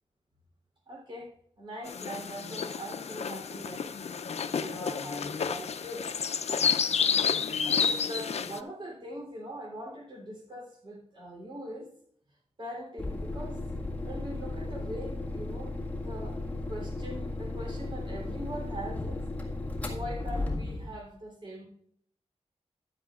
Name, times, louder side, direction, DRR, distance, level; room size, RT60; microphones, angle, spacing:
voice 1, 0.9-1.3 1.6-3.9 4.6-6.1 6.7-7.0 7.6-11.9 12.6-13.6 14.0-16.4 16.7-19.2 19.9-21.7, equal, 45° right, -1 dB, 3.2 m, -42 dB
sound 1, 1.9-8.6, left 6 dB, 70° left, 0.5 m, -30 dB
sound 2, 13.0-21.0, left 2 dB, 15° left, 1.7 m, -35 dB
14.5 x 10.5 x 2.4 m, 0.67 s
wide cardioid pair, 130°, 11 cm